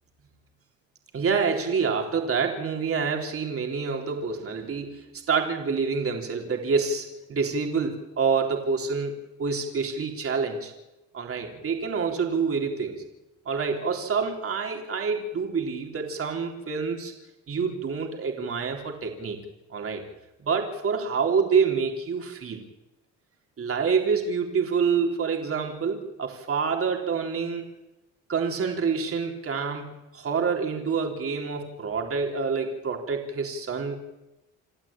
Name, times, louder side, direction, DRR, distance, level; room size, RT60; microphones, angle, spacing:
voice 1, 1.1-10.7 11.1-13.0 13.5-17.1 17.5-19.4 19.7-20.1 20.4-22.6 23.6-27.7 28.3-33.9, right 5 dB, 50° right, 2 dB, 3.7 m, -27 dB
28.5 x 12.5 x 8.9 m, 0.99 s
cardioid pair, 90°, 30 cm